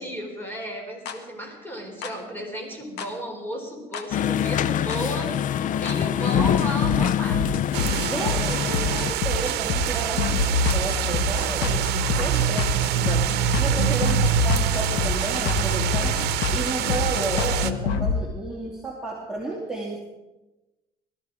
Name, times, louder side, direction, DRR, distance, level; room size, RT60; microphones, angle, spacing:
voice 1, 0.0-7.5 12.0-12.7 13.4-13.8, right 1 dB, 10° left, 2 dB, 4.3 m, -34 dB
sound 1, 1.1-1.2 2.0-2.1 3.0-3.1 3.9-4.0 4.9-5.0 5.9-6.0 6.3-18.1, left 4 dB, 85° left, 1.6 m, -26 dB
sound 2, 4.1-9.1, left 10 dB, 50° left, 0.4 m, -25 dB
sound 3, 7.7-17.7, right 12 dB, 80° right, 0.8 m, -26 dB
voice 2, 8.1-11.8 12.2-20.0, right 2 dB, 5° right, -4 dB, 2.6 m, -32 dB
20.0 x 13.5 x 4.8 m, 1.1 s
cardioid pair, 110°, 17 cm